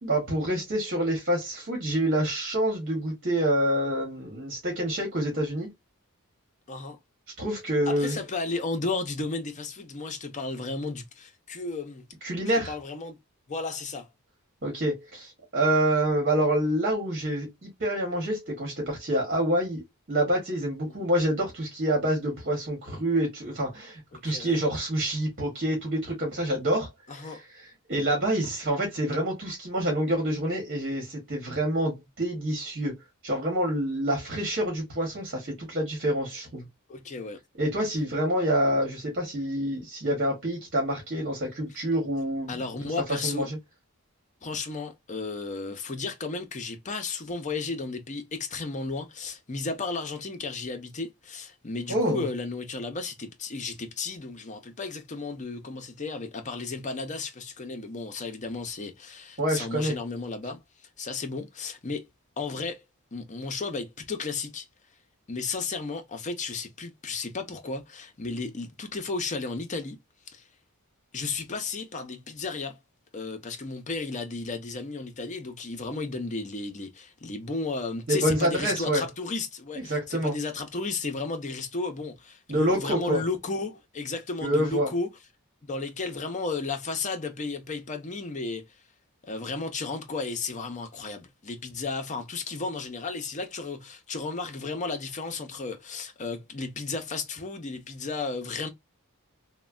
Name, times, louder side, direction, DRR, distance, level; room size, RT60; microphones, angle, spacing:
voice 1, 0.0-5.7 7.4-8.2 12.2-12.7 14.6-19.8 20.1-26.9 27.2-27.4 27.9-33.0 33.2-36.7 37.6-42.6 43.1-43.6 51.9-52.2 59.4-60.0 78.1-79.0 79.8-80.3 82.5-83.2 84.4-84.9, right 1 dB, 45° right, 1.2 m, -27 dB
voice 2, 6.7-7.0 7.9-12.0 12.7-13.2 13.5-14.1 20.8-21.1 24.1-24.6 27.1-27.4 36.9-37.4 42.5-43.5 44.4-60.6 61.0-62.1 62.4-62.8 63.1-64.7 65.3-70.0 70.3-70.4 71.1-72.8 73.1-85.1 85.6-88.6 89.2-98.7, left 3 dB, 35° left, 0.6 m, -34 dB
3.2 x 2.1 x 2.3 m
head